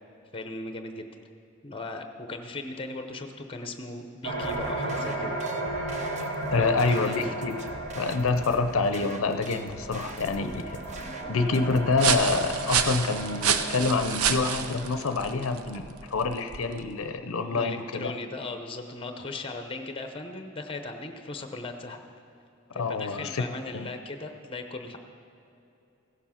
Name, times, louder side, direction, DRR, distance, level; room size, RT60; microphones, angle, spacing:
voice 1, 0.3-1.1 1.6-5.4 6.5-7.3 17.5-22.1 22.7-25.0, left 2 dB, 25° left, 6 dB, 0.7 m, -38 dB
sound 1, 4.2-15.7, right 2 dB, 55° right, 1.9 m, -35 dB
sound 2, 4.4-12.5, right 2 dB, 30° right, 0.7 m, -44 dB
voice 2, 6.5-7.6 7.9-10.8 11.3-18.1 22.7-23.4 23.7-23.9, left 3 dB, 70° left, 8 dB, 0.6 m, -27 dB
sound 3, 9.6-17.0, right 7 dB, 85° right, 0.6 m, -30 dB
16.0 x 7.2 x 5.8 m, 2.8 s
head